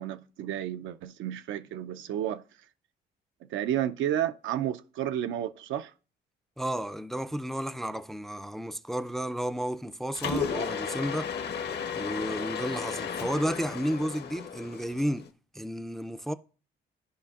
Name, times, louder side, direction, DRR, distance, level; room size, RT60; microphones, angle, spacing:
voice 1, 0.0-2.4 3.5-5.9, right 11 dB, 80° right, 0.4 m, -31 dB
voice 2, 6.6-11.3 12.0-15.3 15.5-16.3, equal, ahead, 0.3 m, -32 dB
Mechanisms, 10.1-15.3, left 6 dB, 55° left, 0.8 m, -34 dB
14.0 x 5.0 x 2.3 m
cardioid pair, 90°, 20 cm